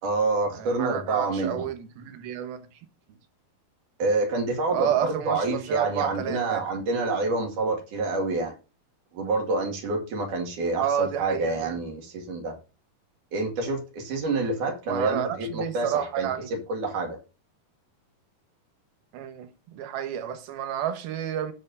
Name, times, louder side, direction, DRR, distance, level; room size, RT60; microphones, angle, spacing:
voice 1, 0.0-1.7 4.0-8.5 9.1-12.6 13.3-17.2, right 3 dB, 55° right, 3.3 m, -27 dB
voice 2, 0.5-2.7 4.7-6.6 10.8-11.8 14.9-16.5 19.1-21.5, right 9 dB, 70° right, 3.0 m, -30 dB
17.0 x 6.4 x 2.6 m
omnidirectional pair, 4.6 m